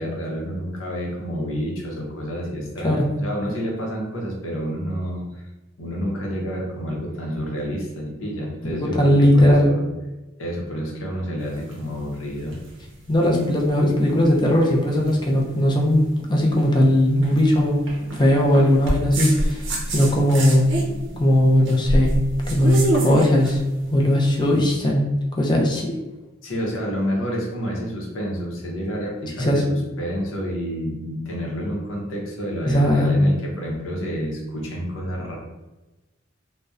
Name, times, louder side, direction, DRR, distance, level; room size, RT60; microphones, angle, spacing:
voice 1, 0.0-5.5 5.8-9.9 10.4-12.6 26.4-35.4, equal, 75° left, -2 dB, 0.7 m, -29 dB
voice 2, 9.0-9.7 13.1-17.9 18.1-19.6 19.9-20.7 21.2-22.2 22.5-23.6 23.9-25.0 25.4-25.9 29.4-29.6 32.7-33.1, equal, 20° left, -1 dB, 0.4 m, -18 dB
sound 1, 11.4-24.6, right 1 dB, 65° right, 0.6 m, -29 dB
2.6 x 2.1 x 2.3 m, 1.1 s
head